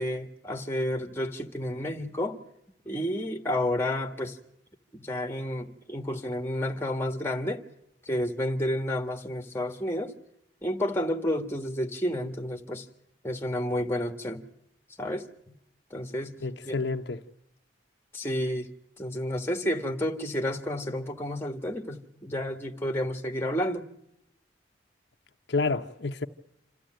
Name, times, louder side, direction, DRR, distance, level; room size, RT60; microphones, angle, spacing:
voice 1, 0.0-2.4 2.8-4.4 4.9-7.6 8.0-10.1 10.6-12.9 13.2-14.4 15.0-15.5 15.9-16.4 16.6-16.8 18.1-18.7 19.0-23.8, left 1 dB, 10° left, 1.6 m, -30 dB
voice 2, 16.4-17.2 25.5-26.3, left 3 dB, 65° left, 0.9 m, -29 dB
27.5 x 14.5 x 9.0 m
head